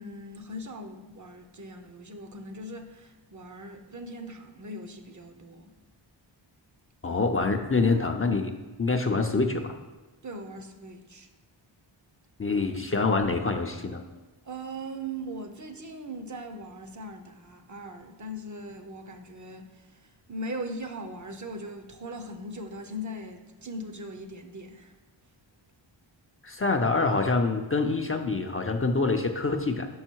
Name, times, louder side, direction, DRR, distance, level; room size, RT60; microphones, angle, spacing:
voice 1, 0.0-5.7 7.0-7.2 10.2-11.3 14.4-25.0, right 1 dB, 40° right, 6 dB, 0.7 m, -40 dB
voice 2, 7.0-8.5 8.8-9.7 12.4-14.0 26.4-29.9, left 3 dB, 30° left, 4 dB, 0.5 m, -26 dB
5.6 x 5.4 x 4.5 m, 1.2 s
wide cardioid pair, 65°, 47 cm